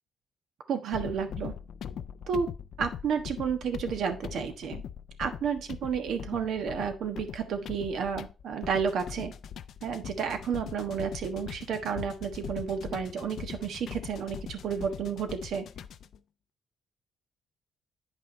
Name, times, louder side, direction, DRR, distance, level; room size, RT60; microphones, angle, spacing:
voice 1, 0.7-1.5 2.3-2.5 2.8-4.8 5.2-9.3 9.8-15.7, right 6 dB, 70° right, 8 dB, 1.2 m, -31 dB
sound 1, 0.9-16.2, left 8 dB, 70° left, 0.5 m, -41 dB
8.9 x 5.5 x 4.2 m, 0.31 s
cardioid pair, 90°, 0 cm